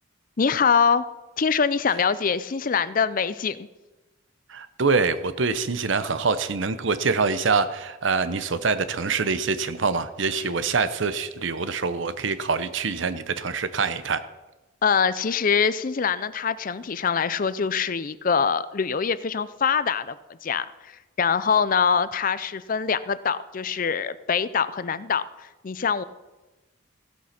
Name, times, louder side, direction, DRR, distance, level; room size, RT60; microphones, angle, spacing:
voice 1, 0.4-1.0 1.4-3.7 14.8-20.2 20.4-25.2 25.6-26.0, left 6 dB, 40° left, 16 dB, 0.5 m, -24 dB
voice 2, 4.5-14.2, right 4 dB, 65° right, 13 dB, 0.8 m, -25 dB
16.0 x 8.3 x 5.9 m, 1.1 s
head